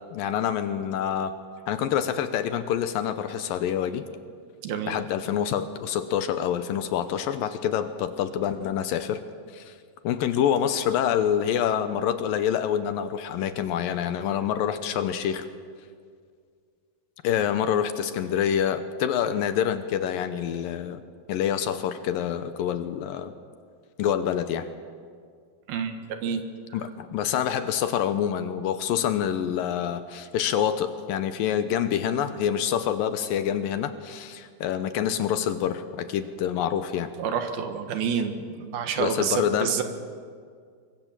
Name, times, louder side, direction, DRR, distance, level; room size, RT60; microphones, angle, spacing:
voice 1, 0.1-1.3 1.7-4.1 4.9-9.2 9.5-9.8 10.0-15.5 17.2-21.0 21.3-23.3 24.0-24.7 26.7-37.1 39.0-39.8, left 9 dB, 75° left, 10 dB, 2.4 m, -26 dB
voice 2, 4.6-5.0 25.7-26.4 37.2-39.8, right 7 dB, 75° right, 7 dB, 3.4 m, -28 dB
23.5 x 23.0 x 7.5 m, 2.1 s
omnidirectional pair, 4.5 m